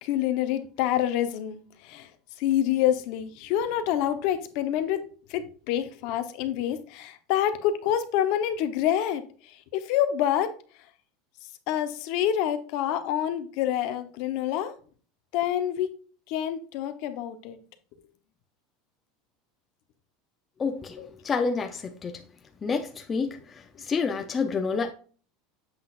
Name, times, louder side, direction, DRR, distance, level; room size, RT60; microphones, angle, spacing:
voice 1, 0.0-2.1 2.4-5.0 5.3-10.5 11.7-14.7 15.3-15.9 16.3-17.6 21.0-21.1, left 11 dB, 50° left, 0.9 m, -27 dB
voice 2, 20.6-22.2 22.6-24.9, left 5 dB, 15° left, 0.6 m, -29 dB
7.7 x 6.2 x 2.5 m
supercardioid pair, 170°, 0 cm